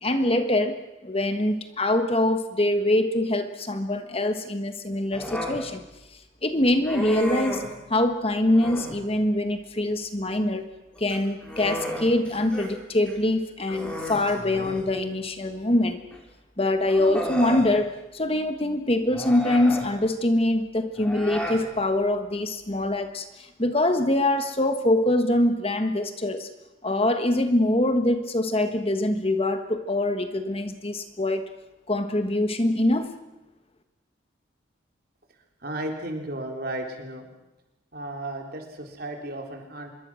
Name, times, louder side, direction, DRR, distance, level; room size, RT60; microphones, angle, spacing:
voice 1, 0.0-5.8 6.4-7.6 7.9-10.6 11.0-16.0 16.6-26.5 26.8-31.5 31.9-33.1, left 1 dB, 30° left, 8 dB, 1.3 m, -24 dB
Human voice, 5.1-5.6 6.8-7.7 8.5-9.0 10.9-12.7 13.1-13.2 13.7-14.9 16.1-16.2 16.9-17.7 19.1-19.9 21.0-21.6, equal, 5° left, 4.4 m, -33 dB
voice 2, 35.6-37.2 37.9-39.9, right 1 dB, 50° right, 2 dB, 3.8 m, -34 dB
25.5 x 22.0 x 6.4 m, 1.0 s
head